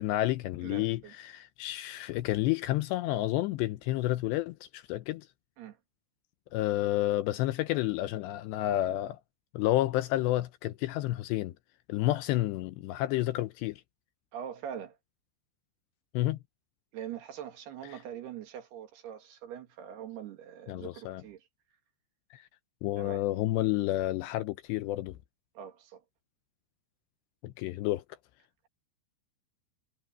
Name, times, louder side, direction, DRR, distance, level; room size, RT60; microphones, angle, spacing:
voice 1, 0.0-5.3 6.5-9.2 9.5-11.5 11.9-13.8 16.1-16.4 17.9-18.0 20.7-21.2 22.3-22.4 22.8-25.2 27.4-28.0, left 16 dB, 85° left, 2.5 m, -30 dB
voice 2, 0.6-1.1 5.6-5.8 14.3-15.0 16.9-21.5 23.0-23.2 25.6-26.0, right 9 dB, 60° right, 3.4 m, -43 dB
omnidirectional pair, 5.8 m